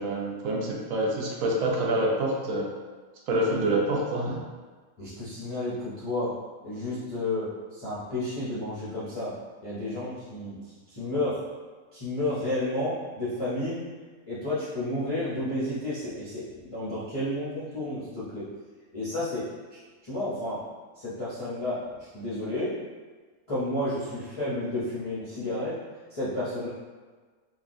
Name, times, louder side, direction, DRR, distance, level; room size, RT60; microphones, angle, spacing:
voice 1, 0.0-2.7 3.3-4.4, right 1 dB, 70° right, -2 dB, 1.0 m, -26 dB
voice 2, 5.0-6.3 6.6-9.3 9.6-10.5 10.9-11.4 11.9-13.8 14.3-18.5 18.9-19.5 20.0-20.6 21.0-22.8 23.5-25.8 26.1-26.7, left 1 dB, 35° left, -11 dB, 0.5 m, -31 dB
3.7 x 2.3 x 2.5 m, 1.4 s
omnidirectional pair, 1.6 m